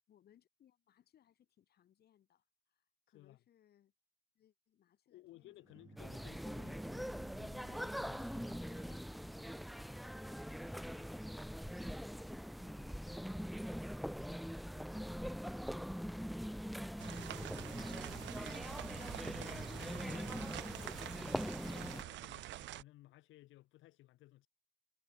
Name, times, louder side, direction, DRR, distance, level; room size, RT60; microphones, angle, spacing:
voice 1, 0.1-3.9 4.4-6.2, left 10 dB, 55° left, 3.7 m, -70 dB
voice 2, 5.1-9.4 19.2-24.5, left 16 dB, 90° left, 1.0 m, -60 dB
sound 1, 5.3-10.9, right 4 dB, 15° right, 1.3 m, -59 dB
sound 2, 6.0-22.0, equal, ahead, 0.3 m, -43 dB
sound 3, 17.0-22.8, right 15 dB, 75° right, 0.7 m, -47 dB
cardioid pair, 160°, 19 cm